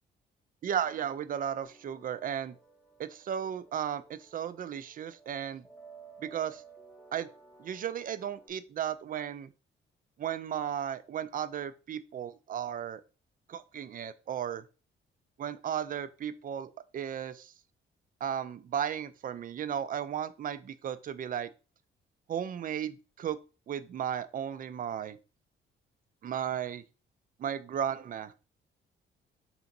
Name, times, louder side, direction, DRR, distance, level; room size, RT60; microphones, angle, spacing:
voice 1, 0.6-2.5 3.0-5.6 6.2-6.6 7.1-7.3 7.6-9.5 10.2-13.0 13.5-14.6 15.4-17.5 18.2-21.5 22.3-23.4 23.7-25.2 26.2-26.8 27.4-28.3, right 9 dB, 45° right, 13 dB, 0.4 m, -35 dB
sound 1, 1.6-8.5, right 5 dB, 10° left, 0.8 m, -56 dB
3.4 x 2.9 x 3.9 m, 0.33 s
cardioid pair, 90°, 20 cm